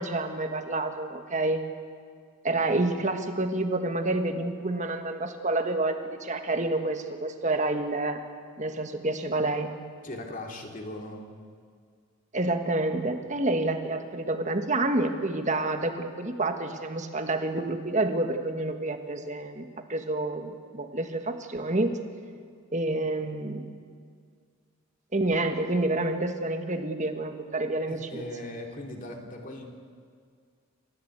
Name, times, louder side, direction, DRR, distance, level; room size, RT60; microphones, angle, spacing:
voice 1, 0.0-1.6 2.4-8.2 8.6-9.7 12.3-21.9 22.7-23.7 25.1-28.2, right 2 dB, 30° right, 6 dB, 1.6 m, -28 dB
voice 2, 10.0-11.3 27.9-29.7, left 1 dB, 35° left, 2 dB, 2.8 m, -39 dB
28.5 x 14.5 x 8.2 m, 2.1 s
head